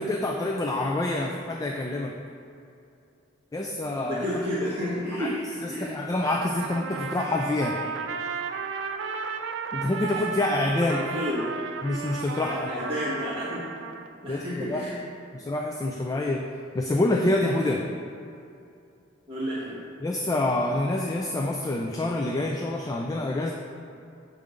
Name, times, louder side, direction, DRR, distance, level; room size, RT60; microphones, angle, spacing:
voice 1, 0.0-2.1 3.5-4.3 5.2-5.3 5.6-7.8 9.7-11.0 11.8-12.7 14.3-14.8 15.3-16.5 16.7-17.9 20.0-23.5, left 2 dB, 20° left, 1 dB, 0.3 m, -27 dB
voice 2, 3.9-5.9 10.9-11.7 12.4-13.6 14.2-14.9 19.3-19.8, equal, 25° right, -14 dB, 1.5 m, -31 dB
Trumpet, 6.2-14.1, right 5 dB, 65° right, 0.4 m, -34 dB
6.7 x 3.6 x 5.0 m, 2.6 s
head